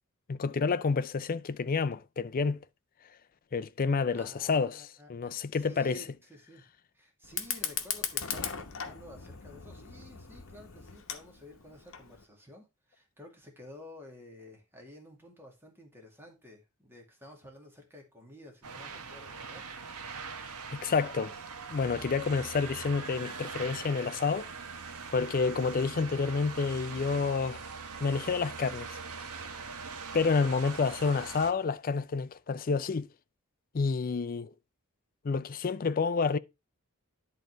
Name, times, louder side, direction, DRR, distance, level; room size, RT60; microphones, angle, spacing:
voice 1, 0.3-2.6 3.5-6.0 20.7-21.3 21.7-24.5 25.1-27.6 28.0-29.0 30.1-33.1 33.7-34.5 35.2-36.4, left 4 dB, 40° left, 0.4 m, -29 dB
voice 2, 4.1-6.7 6.9-19.6, equal, 10° right, 2.0 m, -52 dB
Fire, 7.2-12.2, left 8 dB, 60° left, 1.1 m, -38 dB
sound 1, 18.6-31.5, right 5 dB, 85° right, 1.3 m, -42 dB
10.5 x 3.9 x 4.6 m
head